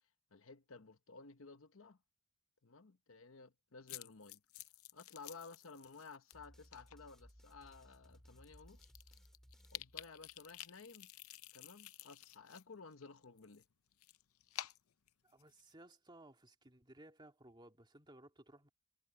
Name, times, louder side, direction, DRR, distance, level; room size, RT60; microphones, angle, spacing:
voice 1, 0.3-2.0 2.6-4.4 4.9-8.9 9.7-11.1 11.5-13.6, left 4 dB, 70° left, 1.0 m, -55 dB
sound 1, 3.9-6.3 6.7-7.0 7.7-7.8 8.1-8.2 8.4-12.6 12.9-15.7, left 13 dB, 90° left, 0.6 m, -51 dB
sound 2, 6.3-10.6, equal, ahead, 5.4 m, -63 dB
voice 2, 15.2-18.7, right 1 dB, 20° right, 2.4 m, -59 dB
head